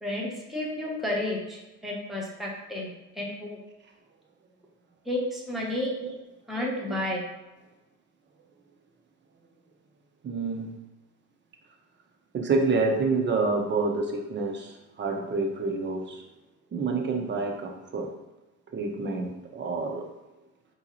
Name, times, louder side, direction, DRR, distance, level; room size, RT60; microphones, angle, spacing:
voice 1, 0.0-2.9 3.2-3.6 5.1-6.0 6.5-7.2, left 1 dB, ahead, -4 dB, 0.8 m, -31 dB
voice 2, 10.2-10.8 12.3-16.2 16.7-18.1 18.7-20.1, right 3 dB, 30° right, 2 dB, 0.7 m, -28 dB
3.7 x 2.7 x 2.9 m, 1.1 s
supercardioid pair, 90°, 34 cm